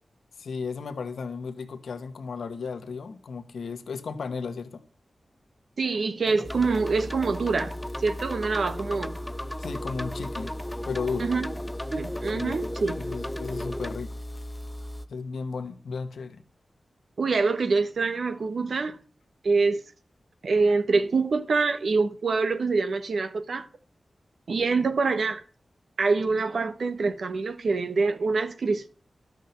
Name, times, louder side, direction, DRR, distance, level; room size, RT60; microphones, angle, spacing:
voice 1, 0.4-4.8 9.6-10.5 10.9-11.3 12.3-14.1 15.1-16.4, left 5 dB, 85° left, 1.3 m, -34 dB
voice 2, 5.8-7.7 8.0-9.1 11.2-11.5 11.9-13.0 17.2-19.0 19.4-19.8 20.4-23.7 24.5-25.4 26.0-28.9, right 4 dB, 75° right, 1.5 m, -25 dB
sound 1, 6.3-14.0, left 1 dB, 10° left, 0.5 m, -36 dB
sound 2, 6.4-15.1, equal, 30° left, 1.2 m, -38 dB
12.0 x 6.4 x 8.0 m
cardioid pair, 60°, 0 cm